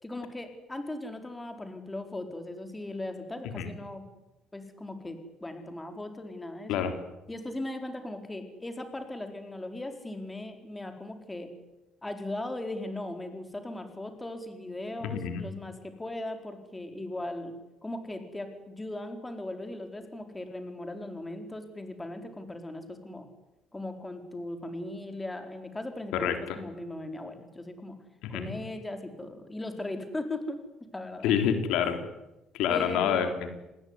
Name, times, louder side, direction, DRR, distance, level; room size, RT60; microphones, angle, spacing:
voice 1, 0.0-4.0 4.5-6.8 7.3-11.5 12.0-17.5 17.8-23.3 23.7-27.9 28.3-30.6 30.9-31.3 32.7-33.3, left 1 dB, 10° left, 6 dB, 4.5 m, -38 dB
voice 2, 15.1-15.4 26.1-26.3 28.2-28.5 31.2-32.0 32.5-33.5, left 8 dB, 85° left, 7 dB, 3.9 m, -27 dB
27.0 x 20.5 x 9.8 m, 0.96 s
cardioid pair, 115°, 0 cm